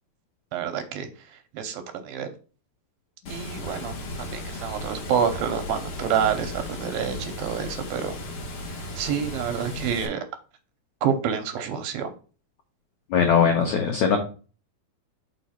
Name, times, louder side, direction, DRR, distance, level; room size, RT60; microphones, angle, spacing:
voice 1, 0.5-1.1 1.5-2.3 3.3-8.1 8.8-10.2 11.0-12.1, right 8 dB, 75° right, 6 dB, 2.4 m, -28 dB
Water, 3.3-10.1, left 2 dB, 55° left, 1.7 m, -36 dB
voice 2, 13.1-14.2, left 7 dB, 80° left, 3 dB, 1.6 m, -20 dB
5.6 x 4.1 x 5.6 m, 0.37 s
omnidirectional pair, 4.6 m